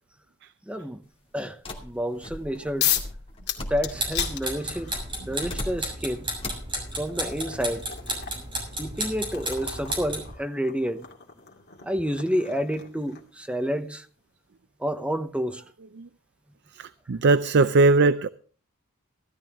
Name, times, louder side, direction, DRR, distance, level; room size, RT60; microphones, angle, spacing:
voice 1, 0.7-1.0 1.3-2.9 3.7-4.9 5.3-6.3 6.9-7.8 8.8-11.1 11.8-14.1 14.8-15.6, equal, 5° right, 0.9 m, -29 dB
sound 1, 1.6-4.2 4.9-6.0 6.4-6.8, left 1 dB, 25° left, 2.5 m, -38 dB
sound 2, 2.8-3.1 3.5-5.0 6.1-6.2 6.8-13.4, left 10 dB, 50° left, 2.4 m, -34 dB
sound 3, 3.8-10.3, right 1 dB, 25° right, 6.7 m, -33 dB
voice 2, 16.7-18.3, right 3 dB, 55° right, 0.5 m, -20 dB
16.0 x 13.0 x 3.6 m
head